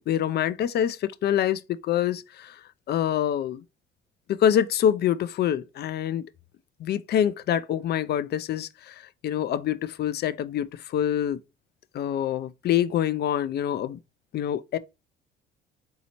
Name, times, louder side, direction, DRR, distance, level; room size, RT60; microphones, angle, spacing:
voice 1, 0.0-2.6 2.9-3.6 4.3-6.2 6.8-11.4 11.9-14.0 14.3-14.8, left 10 dB, 55° left, 0.4 m, -26 dB
4.0 x 2.8 x 2.8 m
supercardioid pair, 75°, 20 cm